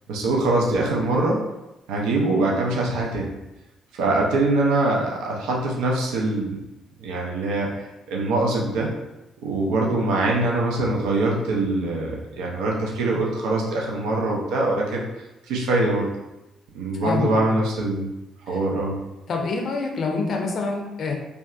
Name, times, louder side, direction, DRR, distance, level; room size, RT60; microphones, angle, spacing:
voice 1, 0.1-1.4 1.9-3.3 3.9-6.6 7.0-8.9 9.4-15.0 15.5-16.1 16.7-18.1 18.5-19.0, right 2 dB, 75° right, -2 dB, 0.4 m, -23 dB
voice 2, 17.0-17.6 18.5-18.6 19.3-21.1, left 4 dB, 55° left, 2 dB, 0.5 m, -26 dB
2.5 x 2.2 x 2.3 m, 0.98 s
hypercardioid pair, 50°, 0 cm